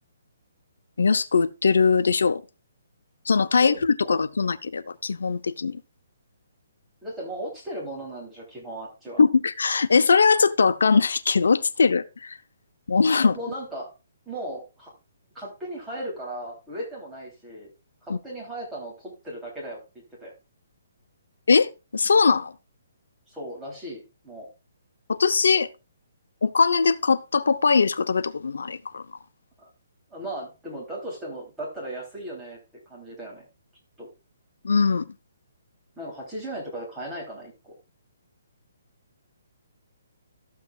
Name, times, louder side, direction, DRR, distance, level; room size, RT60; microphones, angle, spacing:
voice 1, 1.0-2.4 3.3-5.8 9.2-12.4 12.9-13.4 18.1-18.2 21.5-22.5 25.1-25.7 26.4-29.0 34.6-35.1, left 5 dB, 85° left, 0.7 m, -21 dB
voice 2, 7.0-9.2 13.2-13.9 14.2-14.9 15.3-17.7 18.0-19.8 20.2-20.3 23.3-24.5 29.6-29.7 30.1-33.5 34.0-34.1 36.0-37.7, right 1 dB, 5° right, 3.2 m, -36 dB
13.0 x 8.3 x 2.4 m
hypercardioid pair, 170°, 0 cm